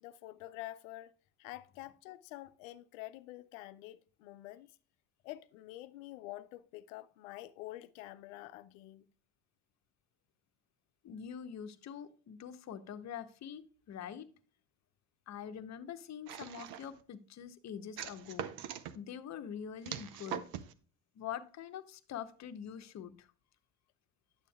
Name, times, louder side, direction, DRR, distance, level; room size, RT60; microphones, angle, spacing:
voice 1, 0.0-1.1 1.4-4.7 5.2-9.1, left 16 dB, 90° left, 0.5 m, -47 dB
voice 2, 11.0-13.6 13.9-14.3 15.3-18.5 18.9-20.4 21.1-23.3, left 8 dB, 45° left, 0.8 m, -44 dB
sound 1, 16.3-17.0 18.0-18.9 19.8-20.7, right 9 dB, 70° right, 0.7 m, -42 dB
10.0 x 6.9 x 2.3 m
supercardioid pair, 80°, 38 cm